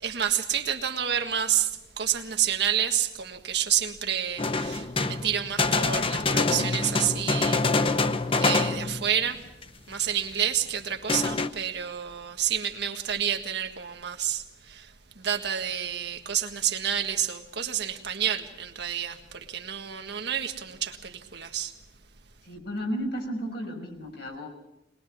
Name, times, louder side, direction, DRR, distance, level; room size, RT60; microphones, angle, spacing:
voice 1, 0.0-8.0 8.4-9.4 9.9-21.7, right 9 dB, 65° right, 1.7 m, -29 dB
sound 1, 4.4-9.2 9.6-9.7 10.2-10.3 11.1-11.5, left 3 dB, 30° left, 0.8 m, -25 dB
voice 2, 22.4-24.5, equal, 65° left, 5.9 m, -33 dB
22.5 x 20.5 x 6.2 m
head